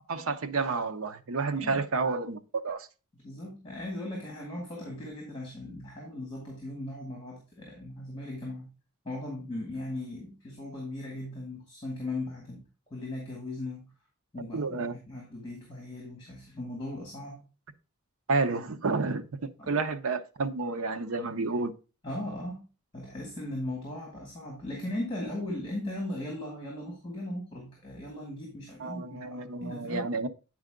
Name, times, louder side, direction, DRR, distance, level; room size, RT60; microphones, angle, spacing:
voice 1, 0.1-2.9 14.5-15.0 18.3-21.7 28.8-30.3, right 3 dB, 75° right, 0.7 m, -30 dB
voice 2, 3.1-8.7 9.0-12.7 12.9-13.9 14.3-17.5 19.6-19.7 22.0-22.7 22.9-30.1, left 1 dB, 20° left, 2.2 m, -38 dB
8.9 x 4.8 x 3.7 m
head